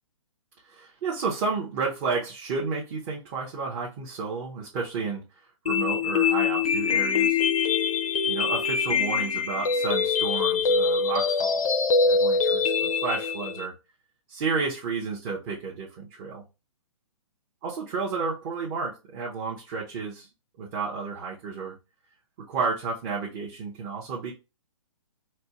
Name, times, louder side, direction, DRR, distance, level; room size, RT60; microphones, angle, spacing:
voice 1, 0.6-5.2 5.6-7.4 8.2-11.7 12.0-13.7 14.3-16.4 17.6-20.3 20.6-21.8 22.4-24.3, right 4 dB, 30° right, -4 dB, 0.8 m, -31 dB
sound 1, 5.7-13.7, left 5 dB, 80° left, 0.6 m, -24 dB
4.2 x 2.2 x 2.9 m, 0.28 s
hypercardioid pair, 145°, 18 cm